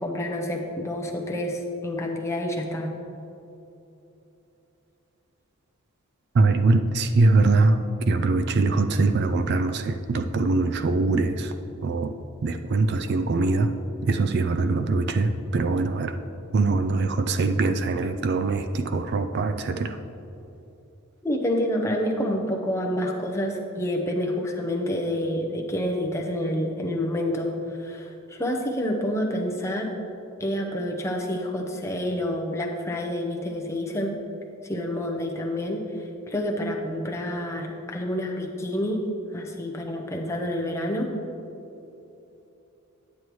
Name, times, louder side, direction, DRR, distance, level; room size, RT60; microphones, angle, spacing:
voice 1, 0.0-2.9 21.2-29.9 30.4-34.1 34.6-35.8 36.3-39.0 39.3-41.1, left 1 dB, 15° left, 0 dB, 0.7 m, -28 dB
voice 2, 6.3-7.8 8.1-11.5 11.8-12.1 12.4-13.7 14.0-16.1 16.5-20.0, right 3 dB, 50° right, 8 dB, 0.3 m, -22 dB
9.4 x 8.3 x 3.1 m, 2.9 s
head